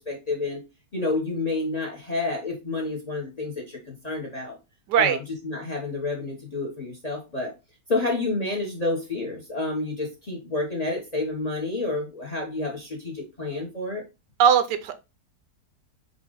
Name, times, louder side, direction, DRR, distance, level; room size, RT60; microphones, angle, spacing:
voice 1, 0.1-0.6 0.9-4.6 4.9-7.5 7.9-14.0, left 2 dB, 30° left, 1 dB, 0.8 m, -29 dB
voice 2, 14.4-15.0, right 8 dB, 80° right, 10 dB, 1.2 m, -19 dB
5.0 x 2.5 x 3.7 m, 0.26 s
omnidirectional pair, 1.9 m